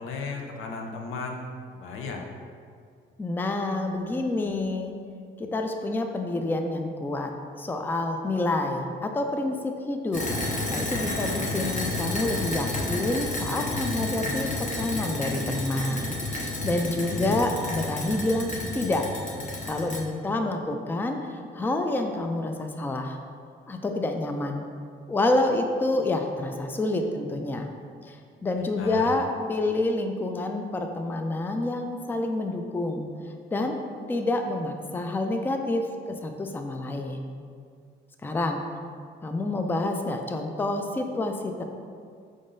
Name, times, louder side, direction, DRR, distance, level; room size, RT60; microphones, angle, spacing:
voice 1, 0.0-2.2 16.8-17.4 28.6-29.1, left 4 dB, 85° left, 2 dB, 0.6 m, -36 dB
voice 2, 3.2-5.0 5.4-10.3 10.7-19.1 19.7-23.2 23.7-24.6 25.1-27.7 28.1-28.2 28.4-33.1 33.5-33.8 34.1-37.4 38.2-38.6 39.2-41.6, left 2 dB, 10° left, 5 dB, 0.3 m, -28 dB
sound 1, 10.1-20.0, left 2 dB, 40° left, 0.8 m, -31 dB
4.9 x 3.7 x 2.6 m, 2.2 s
cardioid pair, 90°, 20 cm